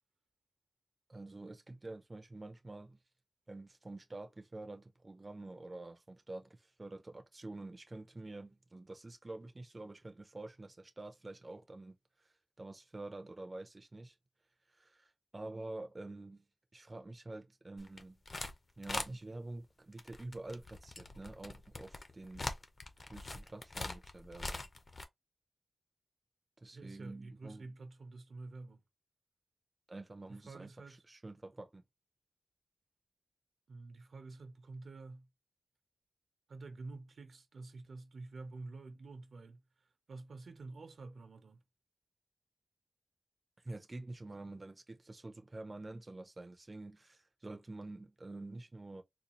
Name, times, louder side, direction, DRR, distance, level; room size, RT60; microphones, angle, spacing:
voice 1, 1.1-3.0 3.5-12.0 12.2-14.2 14.7-16.5 16.7-18.2 18.8-22.5 23.1-24.7 26.6-27.7 29.9-31.8 43.6-49.0, right 2 dB, 25° right, 0.5 m, -48 dB
sound 1, 17.8-18.5 18.8-19.1 19.9-25.0, left 2 dB, 40° left, 0.7 m, -42 dB
voice 2, 26.7-28.8 30.3-31.0 33.7-35.3 36.5-41.6, right 3 dB, 75° right, 0.7 m, -49 dB
4.0 x 2.3 x 3.0 m
wide cardioid pair, 130°, 0 cm